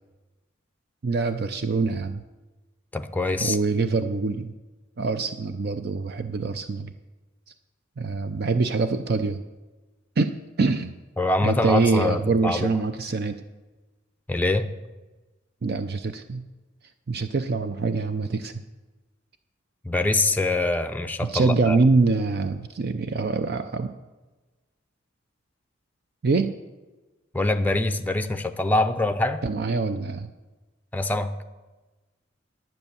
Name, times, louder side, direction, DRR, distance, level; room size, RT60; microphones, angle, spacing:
voice 1, 1.0-2.2 3.4-4.5 5.0-6.9 8.0-9.4 10.2-10.9 11.4-13.4 15.6-16.4 17.1-18.5 21.2-23.9 26.2-26.5 29.4-30.3, right 4 dB, 55° right, 9 dB, 0.5 m, -24 dB
voice 2, 2.9-3.6 11.2-12.7 14.3-14.7 19.8-21.8 27.3-29.4 30.9-31.3, left 2 dB, 10° left, 9 dB, 0.5 m, -24 dB
10.5 x 9.3 x 7.0 m, 1.2 s
head